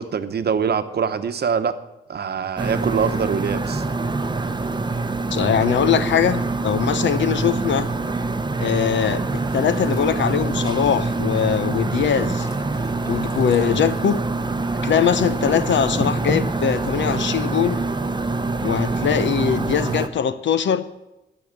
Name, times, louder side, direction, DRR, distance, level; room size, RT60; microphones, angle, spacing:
voice 1, 0.0-1.7 2.1-3.8, right 6 dB, 60° right, 10 dB, 0.9 m, -23 dB
sound 1, 2.6-20.1, right 3 dB, 25° right, 0.8 m, -25 dB
sound 2, 3.9-20.2, left 1 dB, 15° left, 1.7 m, -39 dB
voice 2, 5.3-7.9 8.6-9.2 9.5-12.5 13.0-14.2 14.8-17.8 18.6-20.9, left 8 dB, 85° left, 13 dB, 0.8 m, -21 dB
12.0 x 6.3 x 9.4 m, 0.95 s
wide cardioid pair, 105°, 19 cm